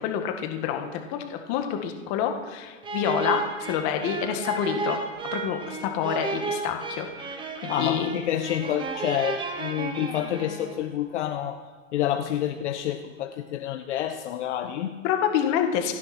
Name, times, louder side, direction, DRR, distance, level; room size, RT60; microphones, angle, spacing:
voice 1, 0.0-5.0 5.3-8.1 15.0-15.9, left 9 dB, 35° left, 5 dB, 1.9 m, -28 dB
sound 1, 2.8-10.9, right 4 dB, 10° right, 1.2 m, -33 dB
voice 2, 7.7-11.6 11.9-14.9, left 11 dB, 60° left, 5 dB, 1.2 m, -28 dB
29.0 x 9.7 x 4.4 m, 1.5 s
hypercardioid pair, 145°, 40 cm